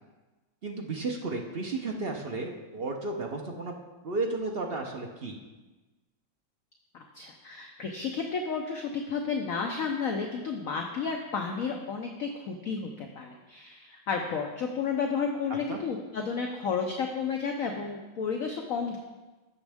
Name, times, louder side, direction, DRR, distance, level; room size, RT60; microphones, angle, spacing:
voice 1, 0.6-3.7 4.0-5.4 15.7-15.8, right 3 dB, 55° right, 1 dB, 0.6 m, -33 dB
voice 2, 6.9-19.0, left 5 dB, 60° left, 2 dB, 0.9 m, -32 dB
15.5 x 6.2 x 3.5 m, 1.2 s
omnidirectional pair, 2.1 m